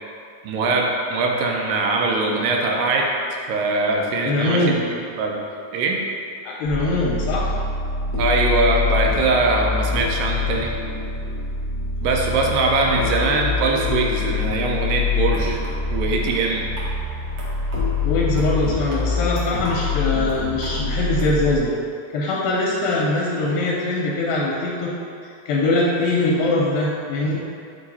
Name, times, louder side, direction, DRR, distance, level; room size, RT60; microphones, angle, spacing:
voice 1, 0.4-3.1 3.5-4.7 5.2-5.4 5.7-6.0 8.2-10.7 12.0-15.6 15.9-16.7, right 3 dB, 85° right, 0 dB, 2.3 m, -21 dB
voice 2, 4.2-4.8 6.4-7.5 18.0-21.7 22.1-24.9 25.5-27.4, left 2 dB, 85° left, -4 dB, 2.4 m, -22 dB
sound 1, 6.6-21.5, left 4 dB, 65° left, 0.8 m, -25 dB
sound 2, 15.3-21.2, right 1 dB, 65° right, 1.3 m, -41 dB
8.4 x 3.0 x 4.1 m, 2.5 s
omnidirectional pair, 4.1 m